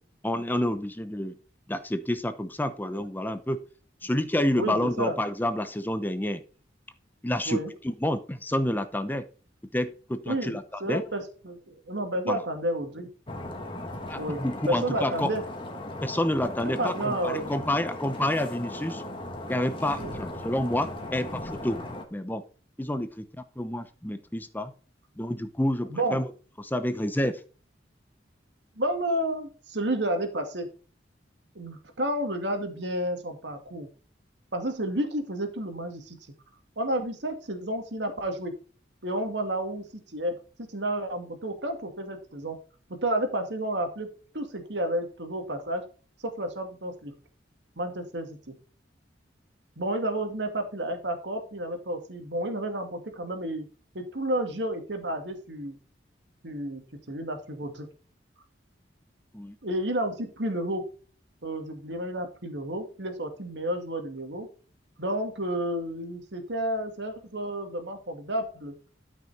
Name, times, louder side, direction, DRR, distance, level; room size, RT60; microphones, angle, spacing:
voice 1, 0.2-1.3 1.7-3.6 4.0-6.4 7.2-9.2 9.7-11.0 12.3-12.4 14.1-15.3 16.0-19.0 19.5-21.8 22.1-22.4 22.8-23.3 23.6-24.7 25.2-26.3 26.6-27.4 59.3-59.6, left 1 dB, 10° left, 10 dB, 0.7 m, -29 dB
voice 2, 4.5-5.2 7.5-7.7 10.3-13.1 14.2-15.4 16.6-17.7 20.0-20.2 25.9-26.2 28.8-30.7 31.6-33.9 34.5-36.2 36.8-38.5 39.0-39.9 40.1-42.6 43.0-44.1 44.3-45.8 46.2-47.1 47.8-48.5 49.8-53.7 53.9-55.8 56.4-56.8 57.1-57.9 59.6-60.8 61.4-64.5 65.0-68.7, right 1 dB, 75° right, 5 dB, 2.2 m, -31 dB
sound 1, 13.3-22.1, left 1 dB, 30° left, 1.7 m, -37 dB
12.5 x 6.0 x 4.2 m, 0.38 s
head